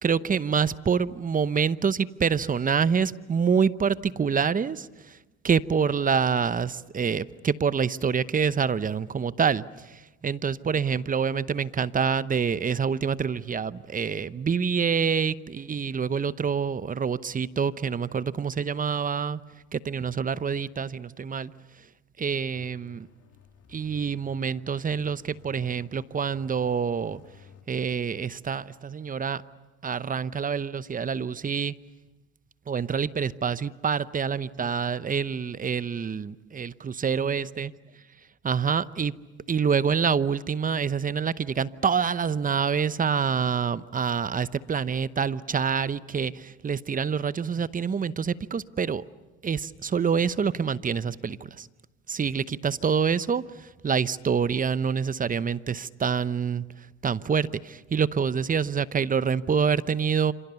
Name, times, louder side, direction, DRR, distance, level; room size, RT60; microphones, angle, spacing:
voice 1, 0.0-4.9 5.4-9.6 10.2-19.4 19.7-21.5 22.2-23.1 23.7-27.2 27.7-29.4 29.8-31.7 32.7-37.7 38.4-39.1 39.5-49.0 49.4-51.7 52.1-53.4 53.8-56.6 57.0-60.3, right 6 dB, 25° right, 0.8 m, -26 dB
sound 1, 22.5-27.6, left 8 dB, 50° left, 3.5 m, -54 dB
27.0 x 27.0 x 7.0 m
supercardioid pair, 85°, 32 cm